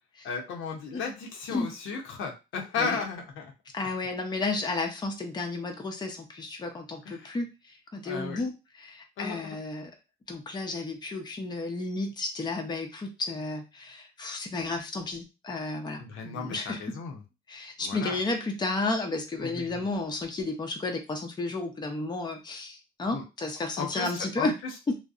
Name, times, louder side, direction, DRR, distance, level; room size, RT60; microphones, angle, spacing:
voice 1, 0.2-3.5 7.1-7.4 8.0-8.4 9.2-9.6 16.0-17.2 17.8-18.2 19.4-19.8 23.1-23.2 23.8-24.5, left 5 dB, 85° left, 1 dB, 0.7 m, -35 dB
voice 2, 3.7-9.9 10.3-16.9 17.5-24.5 24.9-25.0, left 3 dB, 20° left, 3 dB, 0.5 m, -32 dB
2.7 x 2.0 x 2.4 m, 0.27 s
cardioid pair, 90°, 20 cm